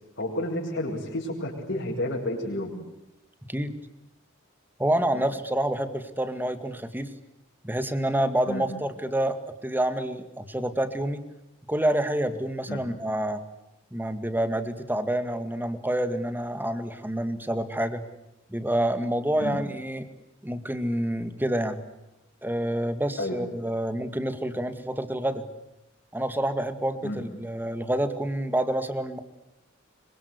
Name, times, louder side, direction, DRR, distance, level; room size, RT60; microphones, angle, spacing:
voice 1, 0.2-2.7 5.1-5.2 8.5-8.6 12.7-12.8 19.4-19.6 23.2-23.4 27.0-27.2, left 1 dB, 55° left, -3 dB, 6.3 m, -30 dB
voice 2, 4.8-7.1 7.6-11.2 11.7-13.4 13.9-18.0 18.5-20.1 20.4-21.8 22.4-25.5 26.1-29.2, right 1 dB, 10° right, 11 dB, 2.0 m, -28 dB
25.5 x 24.0 x 8.2 m, 0.89 s
head